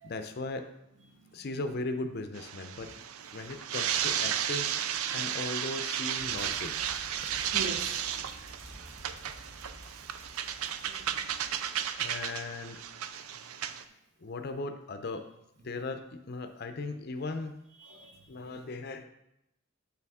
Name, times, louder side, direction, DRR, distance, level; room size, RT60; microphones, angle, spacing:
voice 1, 0.0-0.7 1.3-2.9 3.3-4.9 5.1-6.8 7.2-7.5 12.0-12.8 14.2-15.3 15.6-17.6 18.3-19.0, left 2 dB, 50° left, 7 dB, 0.5 m, -37 dB
sound 1, 2.4-13.8, right 9 dB, 85° right, 0.4 m, -34 dB
sound 2, 6.2-13.0, equal, 30° right, 1.4 m, -52 dB
voice 2, 7.5-8.1 9.2-9.3 10.8-11.3 17.8-18.6, right 2 dB, 55° right, 1 dB, 1.0 m, -43 dB
6.7 x 6.7 x 3.6 m, 0.84 s
head